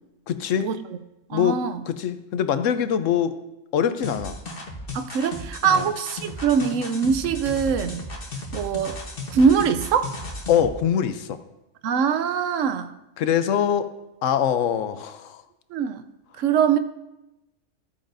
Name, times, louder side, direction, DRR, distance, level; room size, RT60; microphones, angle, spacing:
voice 1, 0.3-0.7 1.3-1.6 1.9-3.3 3.7-4.4 5.7-5.9 10.5-11.4 13.2-13.9 14.2-15.4, left 9 dB, 80° left, 11 dB, 1.0 m, -23 dB
voice 2, 1.3-1.8 4.9-8.0 8.5-9.0 9.3-10.1 11.8-12.9 15.7-16.0 16.4-16.8, right 6 dB, 85° right, 11 dB, 1.0 m, -22 dB
sound 1, 4.0-10.7, left 1 dB, 50° left, 1.3 m, -35 dB
14.0 x 8.7 x 2.6 m, 0.94 s
omnidirectional pair, 1.3 m